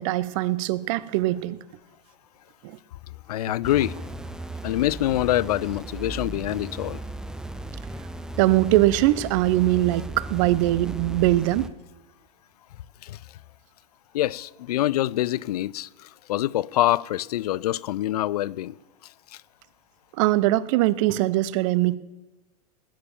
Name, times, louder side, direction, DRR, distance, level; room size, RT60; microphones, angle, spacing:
voice 1, 0.0-1.6 2.6-2.8 8.4-11.7 20.2-22.0, right 16 dB, 50° right, 0.7 m, -22 dB
voice 2, 3.3-4.0 4.6-7.0 13.0-13.2 14.1-18.8 19.3-19.4, left 14 dB, 70° left, 0.5 m, -25 dB
sound 1, 3.6-11.7, right 2 dB, 5° right, 0.8 m, -36 dB
19.5 x 9.6 x 7.1 m
hypercardioid pair, 105°, 20 cm